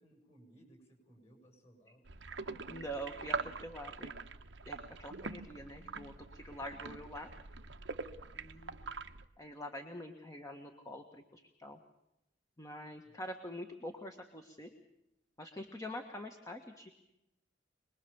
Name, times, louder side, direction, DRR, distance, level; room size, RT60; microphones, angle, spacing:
voice 1, 0.0-2.1 13.0-13.1, right 1 dB, 35° left, 4 dB, 7.9 m, -62 dB
sound 1, 2.0-9.3, right 4 dB, 75° right, 1.1 m, -44 dB
voice 2, 2.4-4.1 4.6-7.3 8.3-8.9 9.4-11.8 12.6-14.7 15.4-16.9, equal, 20° left, 4 dB, 1.6 m, -45 dB
26.0 x 21.0 x 7.2 m, 0.85 s
head